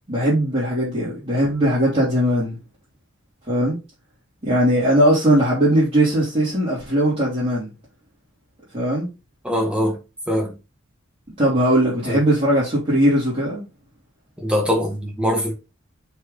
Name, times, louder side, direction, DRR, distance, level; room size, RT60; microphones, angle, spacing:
voice 1, 0.1-2.6 3.5-3.8 4.4-7.7 8.7-9.1 11.4-13.6, right 1 dB, 30° right, 3.5 m, -19 dB
voice 2, 9.4-10.0 10.3-10.5 12.1-12.2 14.4-15.5, equal, 5° right, 1.9 m, -22 dB
6.2 x 4.9 x 4.1 m
head